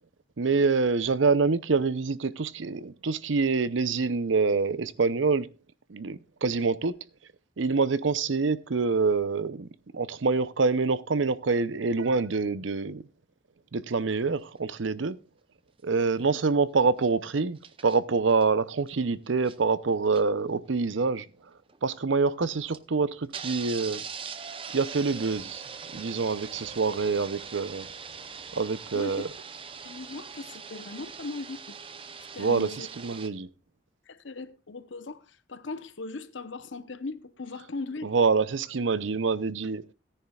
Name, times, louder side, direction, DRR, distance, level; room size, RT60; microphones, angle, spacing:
voice 1, 0.4-5.5 5.9-7.0 7.6-9.7 9.9-13.0 13.7-15.2 15.8-21.3 21.8-24.0 24.7-25.6 25.9-27.9 28.6-29.3 32.4-33.5 38.0-39.8, right 4 dB, 80° right, 0.7 m, -26 dB
sound 1, 14.6-14.7 17.5-18.0 18.3-18.5 18.9-19.0 19.3-19.7 20.1-20.2 20.9-21.0 21.7-21.8 22.7-22.8 23.3-33.3, right 6 dB, 30° right, 0.7 m, -41 dB
voice 2, 28.9-29.3 29.8-31.8 32.3-32.9 34.1-38.1, left 3 dB, 80° left, 0.9 m, -39 dB
17.0 x 10.0 x 2.4 m
head